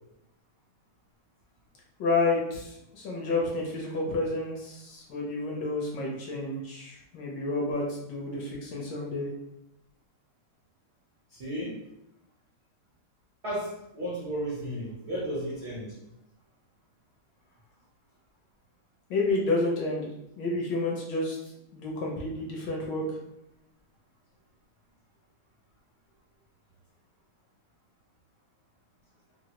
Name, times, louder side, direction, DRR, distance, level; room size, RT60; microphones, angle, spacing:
voice 1, 2.0-9.3 19.1-20.1 20.4-21.4 21.7-23.0, left 2 dB, 70° left, -2 dB, 1.2 m, -30 dB
voice 2, 11.3-11.8 13.4-16.0, equal, 65° right, -7 dB, 0.6 m, -34 dB
3.6 x 2.0 x 2.8 m, 0.82 s
omnidirectional pair, 2.3 m